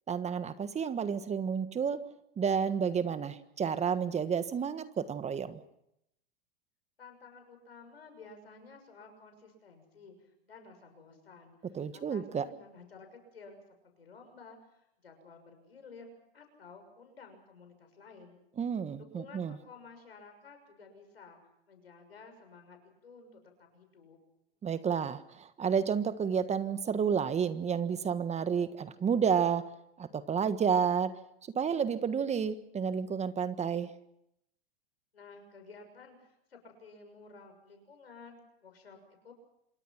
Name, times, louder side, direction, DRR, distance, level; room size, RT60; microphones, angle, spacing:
voice 1, 0.1-2.0 2.4-5.6 11.7-12.5 18.6-19.6 24.6-29.6 30.0-31.1 31.5-33.9, right 7 dB, 20° right, 12 dB, 1.4 m, -30 dB
voice 2, 7.0-18.4 19.0-21.4 21.7-24.2 35.1-39.3, left 4 dB, 90° left, 5 dB, 6.6 m, -53 dB
26.5 x 23.0 x 5.9 m, 0.80 s
hypercardioid pair, 100°, 30 cm